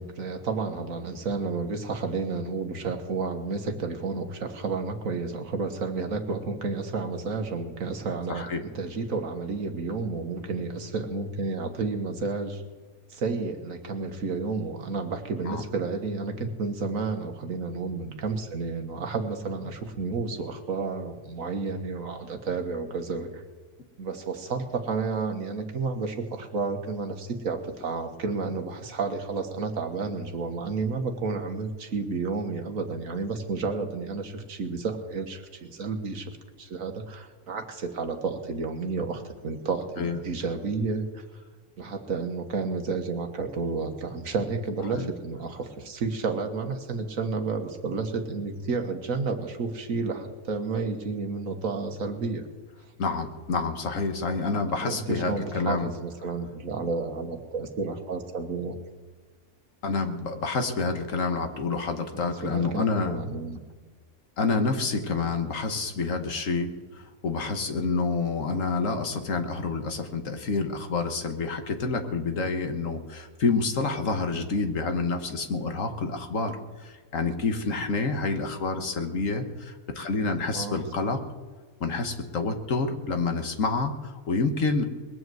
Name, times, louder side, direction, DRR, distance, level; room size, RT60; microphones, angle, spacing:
voice 1, 0.0-12.6 13.1-23.4 24.0-41.2 41.8-52.5 54.8-58.8 62.1-63.6 80.5-80.8, right 4 dB, 65° right, 6 dB, 1.7 m, -31 dB
voice 2, 8.3-8.6 15.4-15.6 40.0-40.2 45.0-45.1 53.0-55.9 59.8-63.2 64.4-81.2 81.8-84.8, left 4 dB, 60° left, 6 dB, 1.6 m, -28 dB
21.0 x 7.9 x 7.7 m, 1.4 s
omnidirectional pair, 1.6 m